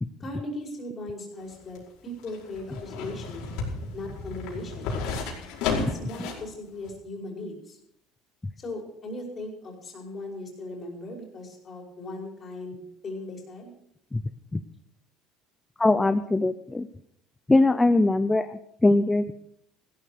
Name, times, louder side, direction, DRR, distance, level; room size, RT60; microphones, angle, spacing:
voice 1, 0.2-3.5 3.9-5.0 5.7-7.8 8.6-13.7, left 1 dB, 30° left, 1 dB, 5.3 m, -38 dB
sound 1, 1.4-6.5 6.9-7.0, left 4 dB, 75° left, 5.1 m, -33 dB
voice 2, 15.8-16.9 17.5-19.3, left 2 dB, 10° left, 10 dB, 0.6 m, -22 dB
16.0 x 12.5 x 4.9 m, 0.72 s
cardioid pair, 130°, 0 cm